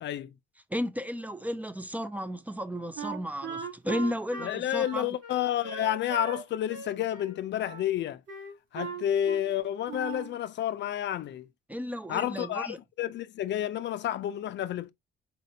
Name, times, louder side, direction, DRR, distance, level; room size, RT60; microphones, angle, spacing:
voice 1, 0.0-0.3 4.4-8.2 8.7-11.5 12.1-14.9, left 11 dB, 65° left, 0.5 m, -30 dB
voice 2, 0.7-5.1 11.7-12.8, equal, 10° right, 0.5 m, -33 dB
Wind instrument woodwind instrument, 3.0-6.4 6.7-7.8 8.3-9.6 9.9-10.3, right 5 dB, 80° right, 2.5 m, -39 dB
4.2 x 4.2 x 2.6 m
cardioid pair, 90°, 20 cm